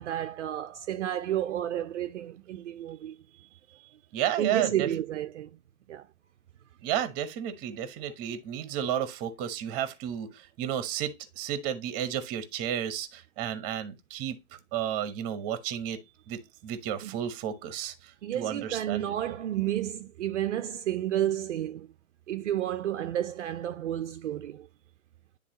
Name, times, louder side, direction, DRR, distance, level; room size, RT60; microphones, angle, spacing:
voice 1, 0.0-3.2 4.4-5.5 5.9-6.0 17.0-17.2 18.2-21.9 22.3-24.7, right 11 dB, 55° right, 0.7 m, -31 dB
voice 2, 4.1-4.9 6.8-14.4 14.7-16.0 16.3-19.4, right 10 dB, 20° right, 1.0 m, -32 dB
10.0 x 3.6 x 2.9 m
hypercardioid pair, 145°, 43 cm